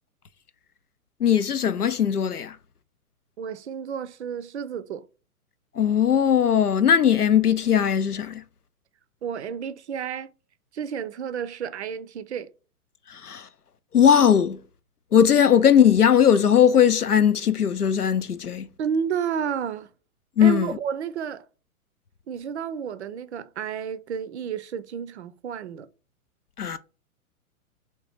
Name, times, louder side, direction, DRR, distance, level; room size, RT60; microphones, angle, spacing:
voice 1, 1.2-2.6 5.8-8.4 13.1-13.5 13.9-14.6 15.1-18.7 20.4-20.8 26.6-26.8, left 8 dB, 90° left, 0.6 m, -19 dB
voice 2, 3.4-5.1 9.2-10.3 10.7-12.5 18.8-19.9 20.4-21.4 22.3-25.9, right 7 dB, 50° right, 0.5 m, -31 dB
3.6 x 3.4 x 4.2 m
figure-of-eight pair, 115°, 44 cm